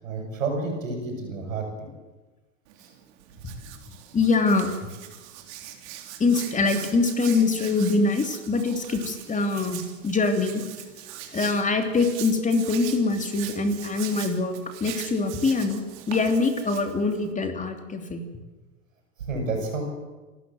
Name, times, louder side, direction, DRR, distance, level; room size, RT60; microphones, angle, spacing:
voice 1, 0.0-1.9 2.8-2.9 19.2-19.8, right 3 dB, 90° right, 2 dB, 8.0 m, -30 dB
Hands, 2.7-17.3, right 11 dB, 60° right, 3.6 m, -41 dB
voice 2, 4.1-4.7 6.2-10.6 11.3-18.2, left 3 dB, 20° left, 5 dB, 3.0 m, -24 dB
28.5 x 13.0 x 7.8 m, 1.2 s
hypercardioid pair, 100°, 38 cm